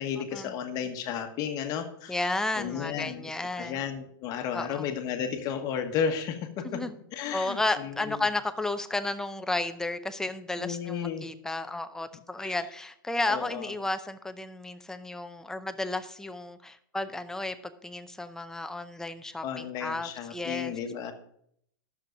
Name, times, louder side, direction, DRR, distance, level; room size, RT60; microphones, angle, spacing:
voice 1, 0.0-2.3 2.6-3.3 3.6-6.8 7.1-8.2 10.6-11.3 12.4-12.6 13.3-13.7 19.4-21.1, left 7 dB, 35° left, 6 dB, 1.4 m, -33 dB
voice 2, 2.1-3.8 4.5-4.9 6.6-6.9 7.3-20.7, left 2 dB, 5° left, 9 dB, 0.6 m, -33 dB
11.0 x 7.1 x 5.1 m, 0.69 s
supercardioid pair, 145°, 11 cm